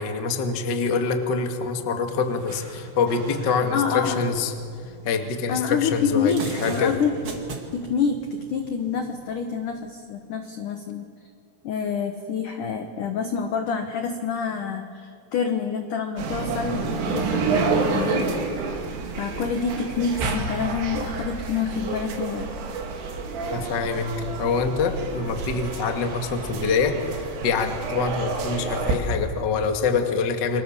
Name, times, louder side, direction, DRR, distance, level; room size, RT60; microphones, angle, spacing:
voice 1, 0.0-4.5 5.0-6.3 6.6-7.0 23.5-30.6, left 5 dB, 65° left, 5 dB, 1.1 m, -25 dB
sound 1, 1.9-10.0, right 3 dB, 45° right, 1.8 m, -41 dB
voice 2, 3.7-4.2 5.5-7.1 7.7-11.1 11.6-18.4 19.2-22.5, left 6 dB, 80° left, 6 dB, 1.8 m, -27 dB
sound 2, 16.2-29.0, right 4 dB, 80° right, 5.2 m, -29 dB
29.5 x 25.0 x 7.4 m, 2.3 s
omnidirectional pair, 5.6 m